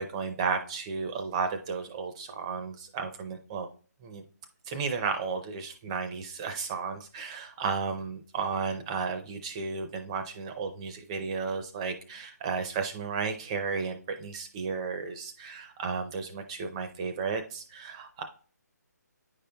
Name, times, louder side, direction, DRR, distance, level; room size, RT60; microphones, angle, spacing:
voice 1, 0.0-3.7 4.0-4.2 4.6-18.2, right 5 dB, 20° right, 7 dB, 0.5 m, -33 dB
9.5 x 5.2 x 2.2 m, 0.41 s
hypercardioid pair, 160°, 10 cm